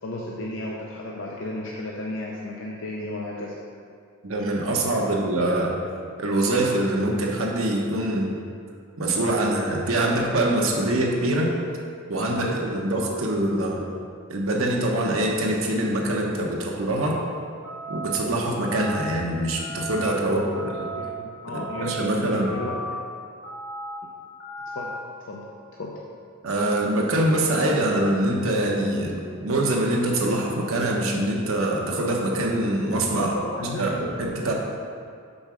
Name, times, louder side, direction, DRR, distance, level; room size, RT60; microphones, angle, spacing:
voice 1, 0.0-3.5 5.3-5.5 20.2-20.7 20.9-22.8 24.7-25.0 25.3-25.5 25.7-26.0 33.2-34.1 34.5-34.6, left 1 dB, 55° left, -3 dB, 0.6 m, -34 dB
voice 2, 4.2-5.7 6.2-8.4 9.0-11.5 12.1-13.8 14.3-17.2 17.9-20.9 21.5-22.6 26.4-33.3 33.8-34.5, right 1 dB, 70° right, -1 dB, 1.0 m, -24 dB
sound 1, 17.6-18.2 18.6-19.1 19.6-20.1 20.5-21.1 21.5-22.0 22.5-23.0 23.4-24.0 24.4-24.9, right 1 dB, 75° left, 1.5 m, -35 dB
5.3 x 4.7 x 6.1 m, 2.2 s
head